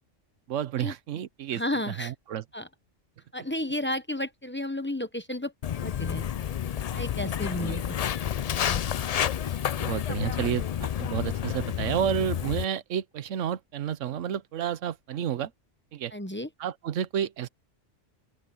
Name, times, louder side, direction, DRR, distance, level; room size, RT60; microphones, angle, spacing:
voice 1, 0.5-1.6 2.0-2.4 7.5-7.8 9.8-15.5 15.9-16.1 16.6-17.5, right 9 dB, 90° right, 1.1 m, -30 dB
voice 2, 1.5-2.1 2.5-2.7 3.3-5.5 5.8-6.2 6.9-8.0 8.6-8.8 16.1-16.5, left 1 dB, 10° left, 0.9 m, -32 dB
Walk footsteps, 5.6-12.6, left 9 dB, 80° left, 0.3 m, -30 dB
open air
omnidirectional pair, 1.2 m